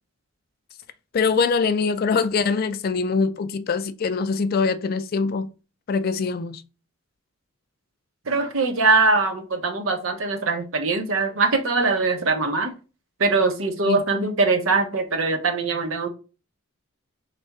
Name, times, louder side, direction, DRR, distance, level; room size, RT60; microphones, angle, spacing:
voice 1, 1.1-5.5 5.9-6.6 13.8-14.0, left 4 dB, 45° left, 0.3 m, -23 dB
voice 2, 8.3-12.7 13.2-16.1, right 3 dB, 75° right, 0.8 m, -22 dB
4.1 x 3.3 x 3.5 m
head